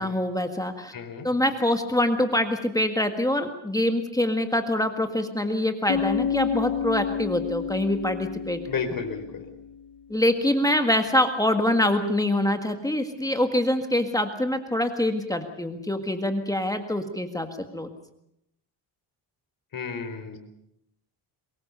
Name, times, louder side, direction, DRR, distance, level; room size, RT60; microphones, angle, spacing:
voice 1, 0.0-0.9 1.2-8.6 10.1-17.5 17.7-17.9, left 1 dB, 10° left, 6 dB, 1.8 m, -25 dB
voice 2, 0.9-1.3 8.7-9.5 19.7-20.4, left 5 dB, 50° left, 6 dB, 4.5 m, -32 dB
Bass guitar, 5.9-9.7, left 7 dB, 70° left, 1.3 m, -30 dB
23.5 x 21.0 x 6.9 m, 0.79 s
cardioid pair, 135°, 45 cm